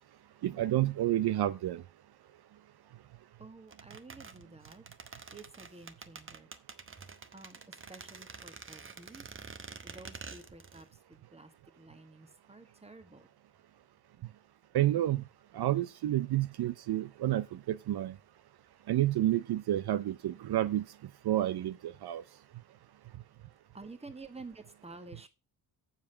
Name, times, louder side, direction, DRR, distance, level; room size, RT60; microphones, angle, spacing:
voice 1, 0.4-1.8 14.7-15.2 15.5-18.2 18.9-20.8 21.2-22.2, right 13 dB, 70° right, 0.6 m, -29 dB
voice 2, 3.4-4.8 5.3-6.5 7.3-9.3 9.8-13.3 23.7-25.3, right 3 dB, 15° right, 1.5 m, -51 dB
sound 1, 3.7-10.9 11.1-11.2, right 5 dB, 30° right, 1.0 m, -48 dB
7.5 x 7.4 x 5.5 m
cardioid pair, 110°, 40 cm